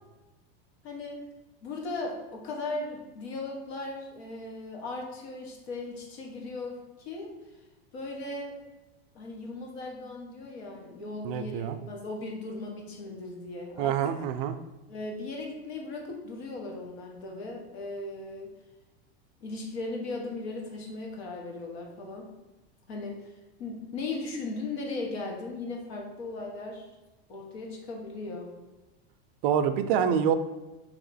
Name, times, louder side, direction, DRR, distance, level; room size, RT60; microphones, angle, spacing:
voice 1, 0.8-1.2 1.6-7.3 7.9-8.6 9.1-14.2 14.9-18.5 19.4-22.3 22.9-23.2 23.6-26.9 27.3-28.5, left 2 dB, 90° left, 0 dB, 1.2 m, -37 dB
voice 2, 11.2-11.8 13.8-14.5 29.4-30.4, right 8 dB, 60° right, 10 dB, 0.4 m, -26 dB
3.4 x 3.0 x 4.0 m, 1.1 s
supercardioid pair, 140°, 31 cm